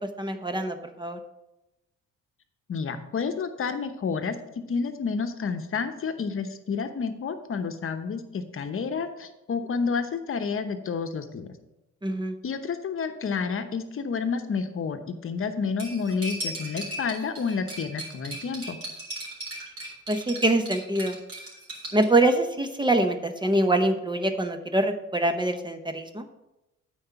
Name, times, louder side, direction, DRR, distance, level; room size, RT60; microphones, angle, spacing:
voice 1, 0.2-1.2 12.0-12.3 20.1-21.2 21.9-26.2, right 1 dB, 15° right, 7 dB, 0.8 m, -24 dB
voice 2, 2.7-4.3 4.7-11.6 12.4-18.8, left 5 dB, 45° left, 8 dB, 1.0 m, -30 dB
Cutlery silverware, 15.8-22.1, right 1 dB, 50° right, 3.5 m, -37 dB
8.7 x 4.7 x 5.8 m, 0.93 s
cardioid pair, 90°, 30 cm